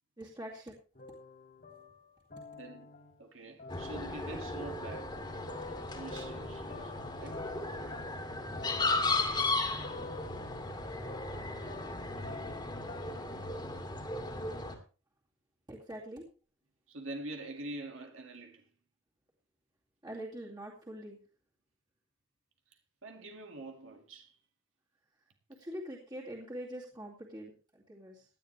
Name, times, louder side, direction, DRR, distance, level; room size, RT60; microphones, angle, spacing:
voice 1, 0.2-0.7 15.7-16.2 20.0-21.2 25.6-28.2, right 1 dB, 20° right, 2.4 m, -44 dB
sound 1, 0.9-3.2 3.6-13.3, left 4 dB, 45° left, 2.6 m, -48 dB
voice 2, 2.5-5.2 5.9-7.4 16.9-18.7 23.0-24.4, right 2 dB, 80° right, 2.1 m, -45 dB
sound 2, 3.7-14.7, left 2 dB, 20° left, 2.2 m, -36 dB
17.5 x 10.5 x 3.3 m
head